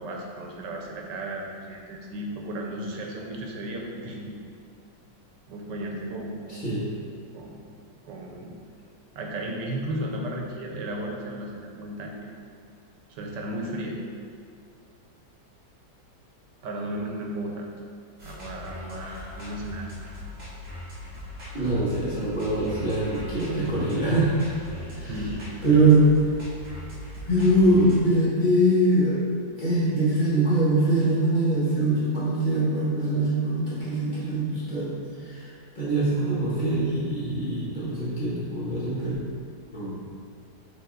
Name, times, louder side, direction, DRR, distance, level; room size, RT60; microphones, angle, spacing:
voice 1, 0.0-4.3 5.5-6.6 7.3-7.6 8.0-8.5 9.1-12.3 13.1-14.0 16.6-17.7 18.2-20.0 25.1-25.4, right 1 dB, 85° right, 0 dB, 1.4 m, -34 dB
voice 2, 6.5-6.8 21.5-24.5 24.9-25.1 25.6-26.1 27.3-29.2 29.6-34.9 35.2-35.5 35.7-39.1 39.7-40.0, right 1 dB, 30° left, -9 dB, 1.4 m, -23 dB
sound 1, 18.2-28.0, left 1 dB, 45° right, 1.6 m, -39 dB
7.3 x 3.4 x 3.8 m, 2.2 s
omnidirectional pair, 1.9 m